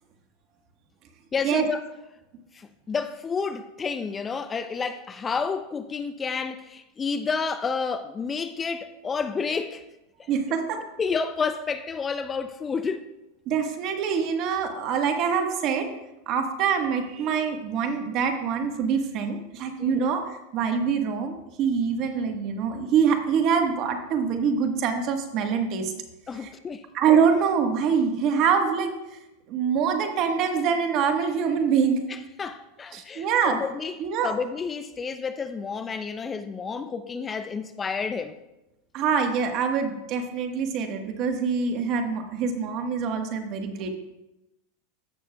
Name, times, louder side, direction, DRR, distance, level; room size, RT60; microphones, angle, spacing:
voice 1, 1.3-1.8 2.5-9.9 10.2-10.3 11.0-13.0 19.8-20.1 26.3-26.8 32.1-38.4, left 5 dB, 20° left, 0.4 m, -30 dB
voice 2, 10.3-10.8 13.5-15.9 16.3-20.2 20.5-25.9 26.4-26.5 26.9-28.9 29.5-32.0 32.9-33.6 34.0-34.3 38.9-43.9, right 6 dB, 45° right, 1.2 m, -25 dB
15.0 x 6.3 x 2.3 m
hypercardioid pair, 115°, 0 cm